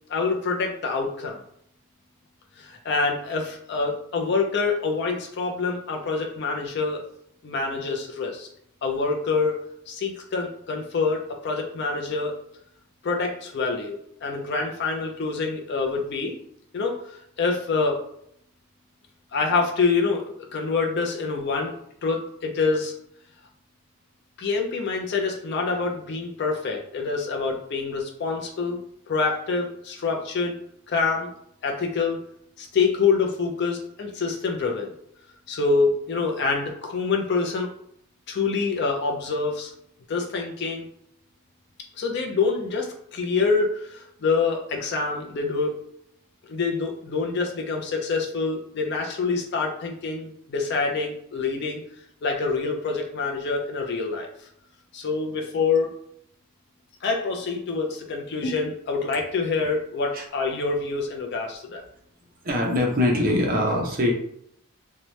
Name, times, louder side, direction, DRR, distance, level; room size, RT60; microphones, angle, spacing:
voice 1, 0.1-1.4 2.6-7.0 7.4-8.5 8.8-12.3 13.0-16.4 16.7-18.0 19.3-21.8 22.0-22.9 24.4-28.8 29.1-30.5 30.9-31.3 31.6-32.2 32.6-34.9 35.5-37.7 38.3-39.7 40.1-40.9 41.9-45.8 46.5-51.8 52.2-54.3 54.9-55.9 57.0-61.8, left 4 dB, 50° left, 1 dB, 0.4 m, -26 dB
voice 2, 62.4-64.1, left 1 dB, 40° right, 0 dB, 0.6 m, -22 dB
2.7 x 2.1 x 3.0 m, 0.71 s
head